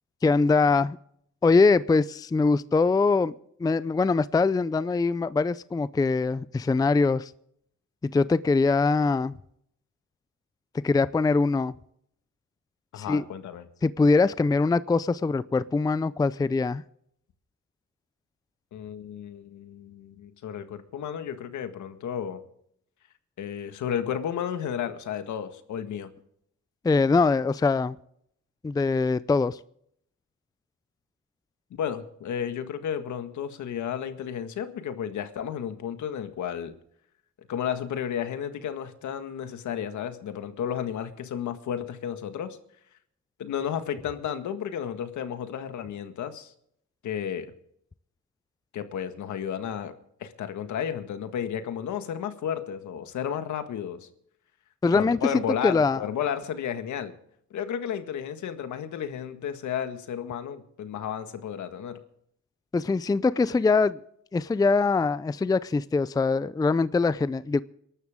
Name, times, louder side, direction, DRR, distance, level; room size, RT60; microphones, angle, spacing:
voice 1, 0.2-1.0 1.4-3.3 3.6-7.3 8.1-9.3 10.8-11.7 13.0-13.2 13.8-16.8 26.8-28.0 28.6-29.6 54.8-55.2 55.6-56.0 62.7-64.0 64.3-67.6, left 4 dB, 15° left, 17 dB, 0.4 m, -23 dB
voice 2, 12.9-13.6 18.7-22.4 23.4-26.1 31.8-36.8 37.5-42.6 43.4-46.5 47.0-47.5 48.7-50.0 50.2-54.1 54.9-57.1 57.5-62.0, left 8 dB, 70° left, 9 dB, 1.7 m, -32 dB
23.0 x 12.0 x 3.6 m, 0.70 s
cardioid pair, 90°, 30 cm